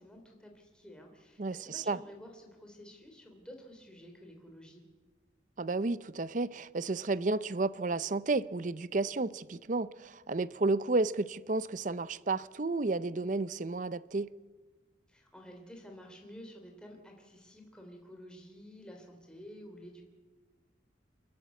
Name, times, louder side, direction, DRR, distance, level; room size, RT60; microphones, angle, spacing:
voice 1, 0.0-4.8 15.1-20.0, equal, 5° left, 3.1 m, -51 dB
voice 2, 1.4-2.0 5.6-14.3, right 3 dB, 40° right, 0.6 m, -32 dB
28.5 x 11.5 x 8.2 m
head